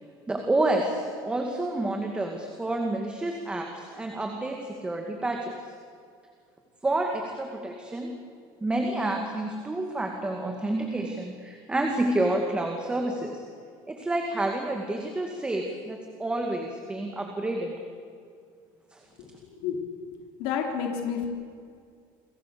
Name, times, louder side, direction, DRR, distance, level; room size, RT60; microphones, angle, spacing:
voice 1, 0.3-5.6 6.8-8.1 8.6-13.4 13.9-17.7 18.9-19.0, right 2 dB, 10° right, 2 dB, 2.2 m, -29 dB
voice 2, 20.4-21.3, left 7 dB, 70° left, 2 dB, 4.0 m, -29 dB
30.0 x 23.5 x 6.9 m, 2.3 s
cardioid pair, 175°, 10 cm